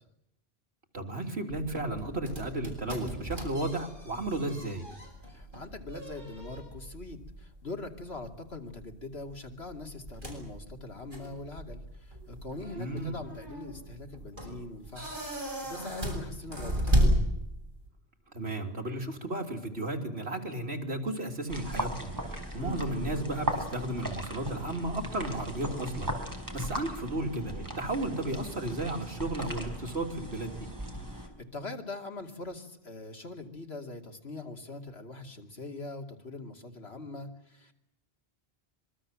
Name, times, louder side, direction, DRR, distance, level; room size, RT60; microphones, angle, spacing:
voice 1, 0.9-4.9 12.8-13.2 18.3-26.1 26.5-30.5, right 1 dB, 75° right, 3 dB, 3.6 m, -34 dB
sound 1, 1.5-17.9, equal, 55° right, 7.7 m, -34 dB
voice 2, 5.3-17.2 22.6-22.8 31.0-37.7, left 2 dB, 80° left, 4 dB, 3.0 m, -42 dB
sound 2, 21.5-31.3, equal, 20° right, 4.5 m, -37 dB
26.0 x 23.0 x 7.6 m, 0.82 s
omnidirectional pair, 1.1 m